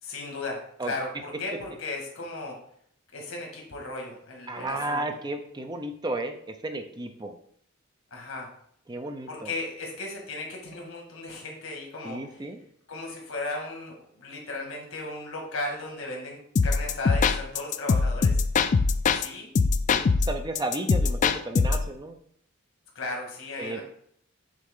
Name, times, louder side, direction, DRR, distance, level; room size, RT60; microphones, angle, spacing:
voice 1, 0.0-2.6 3.1-5.0 8.1-8.5 9.3-12.2 12.9-18.4 19.1-19.5 23.0-23.8, left 2 dB, 90° left, 0 dB, 1.7 m, -36 dB
voice 2, 4.5-7.4 8.9-9.5 12.0-12.6 19.9-22.2 23.6-23.8, right 2 dB, 20° right, 6 dB, 0.6 m, -33 dB
sound 1, 16.6-19.3 19.6-21.9, left 4 dB, 40° left, 0.3 m, -23 dB
7.5 x 3.7 x 3.7 m, 0.66 s
head